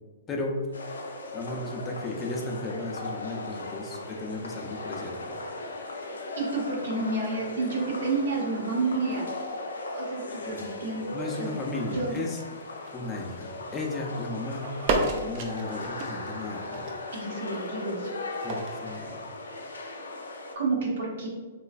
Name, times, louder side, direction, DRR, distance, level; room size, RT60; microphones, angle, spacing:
sound 1, 0.7-20.5, left 2 dB, 90° left, 0.4 m, -38 dB
voice 1, 1.3-5.4 10.5-10.7 11.1-12.4 12.9-14.7 15.2-16.9 18.4-19.3, left 2 dB, 20° left, 0 dB, 0.5 m, -35 dB
voice 2, 6.4-9.3 9.9-11.5 11.9-12.2 17.1-18.1 20.5-21.3, right 3 dB, 70° right, -2 dB, 1.0 m, -30 dB
sound 2, 10.8-13.4 13.7-14.2 14.6-19.0, right 3 dB, 45° right, 0.5 m, -34 dB
3.1 x 3.0 x 2.4 m, 1.4 s
hypercardioid pair, 125°, 0 cm